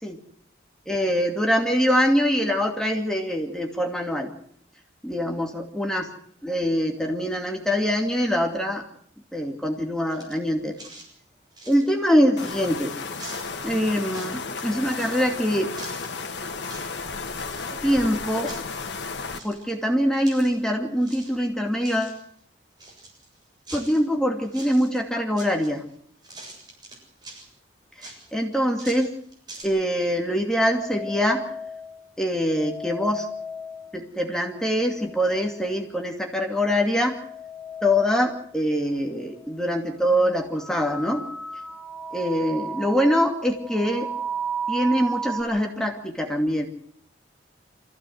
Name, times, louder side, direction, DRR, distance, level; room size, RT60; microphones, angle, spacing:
voice 1, 0.9-4.3 5.0-6.1 6.4-8.8 9.3-10.8 11.7-12.9 13.6-15.7 17.7-18.5 19.4-22.2 23.7-25.8 28.0-29.1 29.6-31.4 32.2-33.3 33.9-37.2 37.8-41.3 42.1-44.1 44.7-46.7, equal, 5° left, 2 dB, 2.5 m, -24 dB
sound 1, 10.1-10.5 10.7-11.1 11.5-12.8 13.1-13.6 14.0-14.6 14.9-15.2 15.8-16.3 16.6-16.9 17.2-18.1 18.4-18.8 19.3-20.7 21.0-21.4 21.7-22.2 22.8-24.1 24.4-25.0 25.4-25.9 26.2-27.5 28.0-29.6, right 2 dB, 20° right, 7.4 m, -44 dB
sound 2, 12.4-19.4, left 4 dB, 70° left, 1.7 m, -33 dB
sound 3, 30.7-32.0 32.5-34.2 34.6-35.7 36.7-38.5 39.1-39.2 40.0-40.3 40.6-45.4, right 2 dB, 20° left, 6.5 m, -34 dB
25.5 x 16.0 x 8.0 m, 0.63 s
head